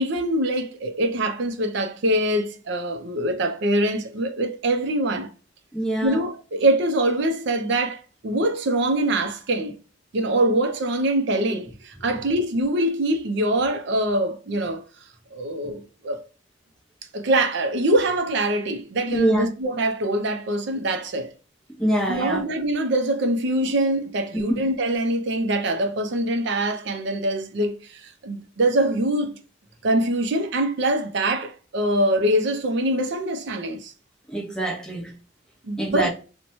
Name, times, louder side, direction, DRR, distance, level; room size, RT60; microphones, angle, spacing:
voice 1, 0.0-5.3 6.0-9.8 10.1-14.8 15.3-16.2 17.1-21.3 22.1-29.4 29.8-33.9 35.7-36.1, right 1 dB, 65° right, 0.5 m, -24 dB
voice 2, 5.7-6.2 11.5-11.6 19.1-19.5 21.8-22.4 24.5-24.6 34.3-35.1 35.8-36.1, right 1 dB, 5° left, 0.7 m, -24 dB
2.9 x 2.1 x 2.6 m
head